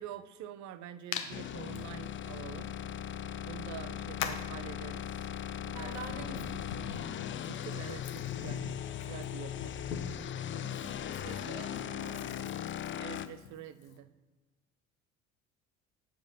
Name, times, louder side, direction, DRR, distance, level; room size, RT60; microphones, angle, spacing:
voice 1, 0.0-2.7 3.4-5.3 5.6-6.6 7.5-9.7 13.0-14.1, right 11 dB, 45° right, 0.7 m, -47 dB
Hands, 1.1-1.3 1.7-1.8 3.1-3.2 4.2-4.5 5.4-10.3 10.7-14.0, left 8 dB, 80° left, 0.9 m, -42 dB
sound 1, 1.3-13.3, left 10 dB, 30° left, 0.6 m, -39 dB
voice 2, 5.7-6.7 10.5-11.0 11.2-12.5, right 3 dB, 70° right, 1.5 m, -46 dB
8.5 x 5.1 x 5.4 m
hypercardioid pair, 60°, 39 cm